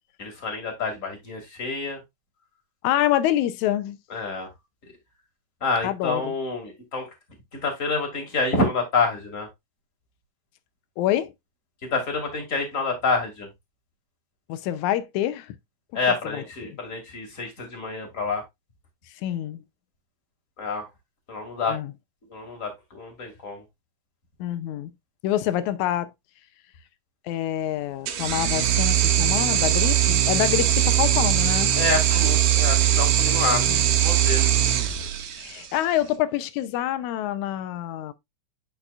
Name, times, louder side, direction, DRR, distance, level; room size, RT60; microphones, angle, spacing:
voice 1, 0.2-2.0 4.1-4.5 5.6-7.1 7.6-9.5 11.9-13.5 15.9-18.4 20.6-20.8 21.3-21.8 22.3-23.6 31.8-33.6 34.0-34.4, left 3 dB, 30° left, 2.4 m, -27 dB
voice 2, 2.8-4.0 5.8-6.3 11.0-11.3 14.5-15.6 16.2-16.8 19.2-19.6 21.7-21.9 24.4-24.9 25.2-26.1 27.3-31.7 33.7-33.8 35.4-38.1, left 12 dB, 85° left, 2.0 m, -26 dB
sound 1, 28.1-35.7, right 11 dB, 75° right, 2.2 m, -21 dB
9.0 x 5.5 x 2.4 m
omnidirectional pair, 3.4 m